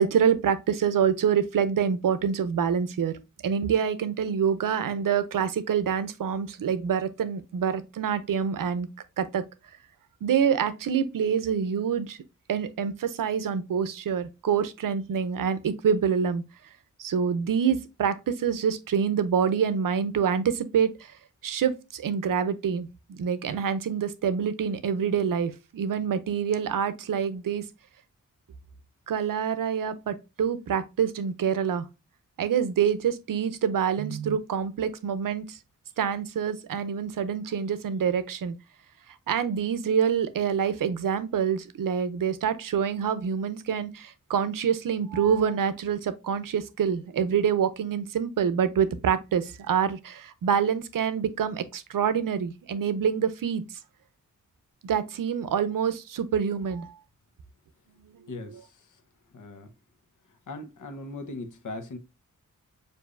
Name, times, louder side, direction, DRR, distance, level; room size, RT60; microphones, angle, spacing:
voice 1, 0.0-8.9 9.2-9.4 10.2-12.2 12.5-16.4 17.0-21.1 21.4-27.6 29.1-31.8 32.4-35.6 36.0-38.5 39.3-53.6 54.8-56.9 58.3-58.6, right 7 dB, 80° right, 0.6 m, -26 dB
voice 2, 59.3-59.7 60.5-62.0, left 2 dB, 65° left, 0.9 m, -38 dB
6.8 x 2.6 x 2.5 m
wide cardioid pair, 105°, 32 cm